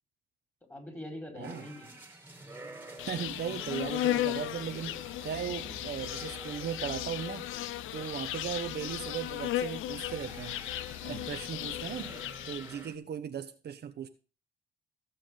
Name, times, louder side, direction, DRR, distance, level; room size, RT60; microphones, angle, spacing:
voice 1, 0.7-1.9 5.7-5.9 8.2-8.3 10.9-11.4, left 1 dB, 10° left, 4.6 m, -45 dB
sound 1, 1.4-12.9, right 2 dB, 10° right, 2.7 m, -50 dB
Insect, 3.0-12.8, left 14 dB, 85° left, 0.5 m, -36 dB
voice 2, 3.1-7.5 7.9-10.6 11.0-12.1 12.5-14.1, right 8 dB, 55° right, 1.0 m, -37 dB
sound 2, 4.1-8.8, left 2 dB, 70° left, 7.6 m, -56 dB
15.0 x 7.3 x 3.8 m
cardioid pair, 90°, 20 cm